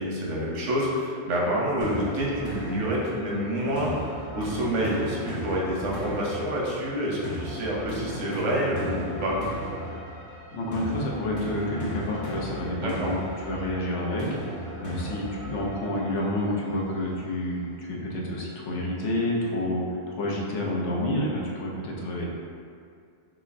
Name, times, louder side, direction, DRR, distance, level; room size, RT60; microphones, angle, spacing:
voice 1, 0.0-9.4 12.8-13.1, equal, 90° right, -4 dB, 1.1 m, -28 dB
sound 1, 1.8-16.8, right 1 dB, 35° left, 0.7 m, -36 dB
voice 2, 10.5-22.3, left 1 dB, 90° left, -3 dB, 1.0 m, -29 dB
5.9 x 2.1 x 2.5 m, 2.3 s
omnidirectional pair, 1.2 m